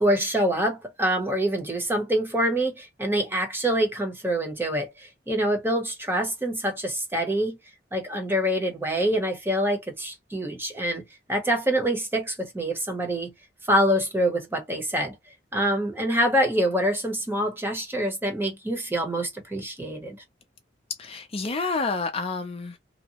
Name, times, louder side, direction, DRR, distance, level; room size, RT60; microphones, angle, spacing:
voice 1, 0.0-7.6 7.9-11.0 11.3-13.3 13.7-15.1 15.5-20.2, equal, 10° right, 0.8 m, -25 dB
voice 2, 21.0-22.8, left 3 dB, 35° left, 0.5 m, -29 dB
2.7 x 2.0 x 2.8 m
head